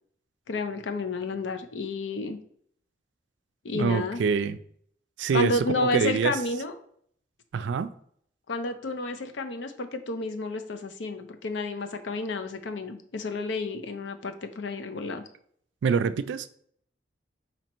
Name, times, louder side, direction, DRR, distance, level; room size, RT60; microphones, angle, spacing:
voice 1, 0.5-2.4 3.6-4.2 5.3-6.7 8.5-15.2, left 3 dB, 90° left, 7 dB, 0.5 m, -31 dB
voice 2, 3.7-4.6 5.2-6.3 7.5-7.9 15.8-16.5, right 6 dB, 90° right, 12 dB, 0.3 m, -25 dB
4.4 x 2.8 x 4.1 m, 0.64 s
head